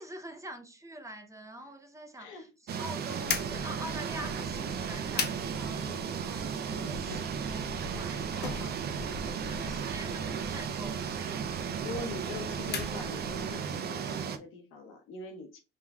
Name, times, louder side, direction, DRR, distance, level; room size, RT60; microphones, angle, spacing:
voice 1, 0.0-11.5, right 1 dB, 15° right, 0.7 m, -46 dB
voice 2, 2.2-2.5 5.8-6.1 6.7-7.0 11.4-11.5 11.8-15.6, left 3 dB, 85° left, 0.9 m, -42 dB
sound 1, 2.7-14.4, right 7 dB, 55° right, 0.5 m, -35 dB
sound 2, 3.2-13.6, left 5 dB, 55° left, 0.6 m, -40 dB
3.7 x 3.2 x 2.3 m
cardioid pair, 90°, 20 cm